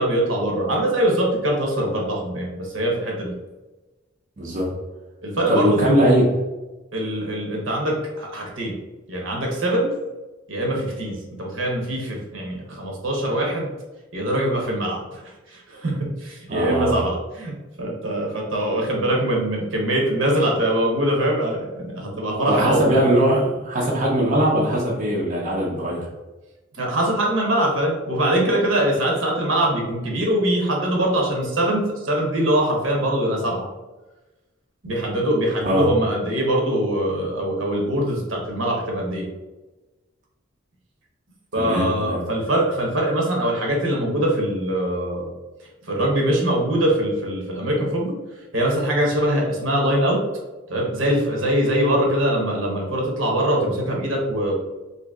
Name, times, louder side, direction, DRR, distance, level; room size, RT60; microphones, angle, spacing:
voice 1, 0.0-3.3 5.2-6.0 6.9-8.7 9.1-9.9 10.5-13.7 14.1-23.1 26.7-33.7 34.8-39.3 41.5-45.3 45.8-48.2 48.5-50.2 50.7-54.5, right 1 dB, 75° right, -1 dB, 1.0 m, -23 dB
voice 2, 4.4-4.7 5.5-6.2 16.5-17.0 22.5-26.1 35.7-35.9 41.6-42.2, equal, 40° right, -3 dB, 0.6 m, -20 dB
2.8 x 2.7 x 3.5 m, 1.1 s
head